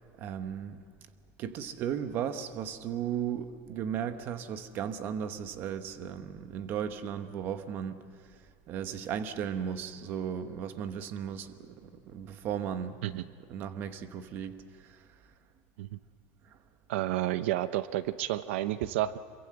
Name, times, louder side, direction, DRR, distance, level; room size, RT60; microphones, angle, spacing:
voice 1, 0.2-0.8 1.4-8.0 8.7-15.0, right 8 dB, 35° right, 10 dB, 1.1 m, -36 dB
voice 2, 16.9-19.2, right 14 dB, 85° right, 13 dB, 0.8 m, -31 dB
26.5 x 23.5 x 7.8 m, 2.1 s
cardioid pair, 180°, 6 cm